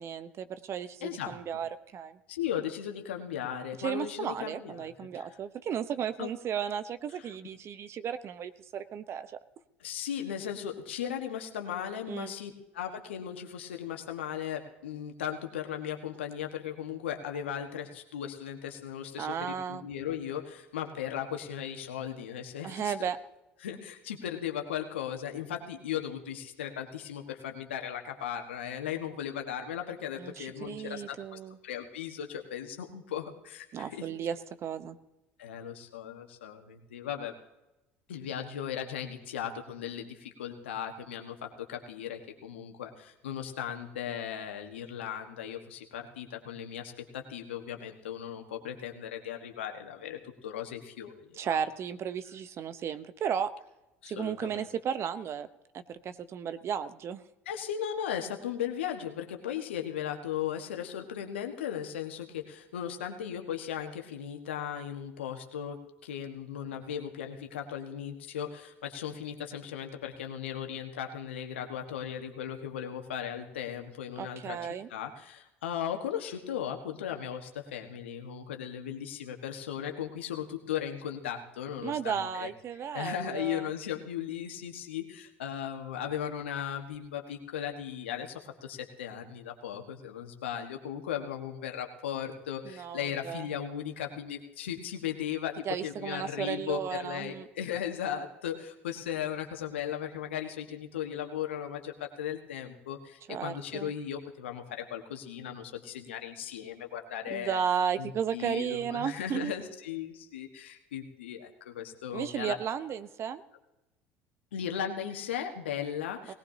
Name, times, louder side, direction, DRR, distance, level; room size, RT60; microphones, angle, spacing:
voice 1, 0.0-2.2 3.8-9.3 12.1-12.3 19.2-19.9 22.6-23.2 30.2-31.6 33.7-34.4 34.6-35.0 51.4-53.5 54.1-55.5 55.7-57.2 74.2-74.9 81.8-83.7 92.7-93.4 95.6-97.4 103.3-103.9 107.3-109.5 112.1-113.4, right 8 dB, 45° right, 12 dB, 1.0 m, -34 dB
voice 2, 1.0-1.3 2.3-5.3 6.2-6.3 7.1-7.3 9.8-22.9 23.6-34.0 35.4-37.3 38.1-51.6 54.0-54.7 57.4-65.8 66.0-74.6 74.9-82.5 82.9-107.6 108.0-112.6 114.5-116.3, left 9 dB, 80° left, 4 dB, 1.6 m, -37 dB
19.5 x 18.5 x 2.9 m, 0.93 s
hypercardioid pair, 65°, 6 cm